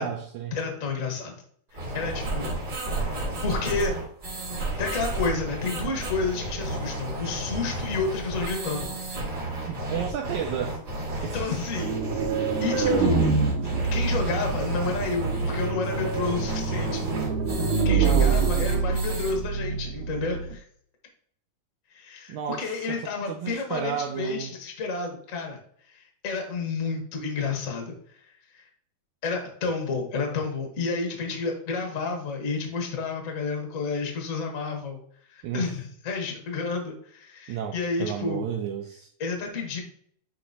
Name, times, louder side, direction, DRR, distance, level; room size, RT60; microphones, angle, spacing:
voice 1, 0.0-0.6 9.6-10.8 11.2-11.6 18.0-19.0 22.3-24.5 35.4-35.7 37.5-39.1, right 8 dB, 90° right, 1.7 m, -33 dB
voice 2, 0.5-1.4 1.7-2.6 2.9-4.0 4.8-8.9 11.3-12.0 12.3-13.3 13.6-17.1 17.8-20.6 21.9-25.6 25.9-28.3 28.5-28.6 29.2-35.0 35.3-38.4 39.2-39.8, left 4 dB, 80° left, 0.7 m, -30 dB
sound 1, 1.7-19.3, right 2 dB, 35° right, 2.2 m, -32 dB
sound 2, 11.8-20.5, right 5 dB, 70° right, 1.8 m, -26 dB
9.6 x 4.2 x 2.8 m
omnidirectional pair, 3.9 m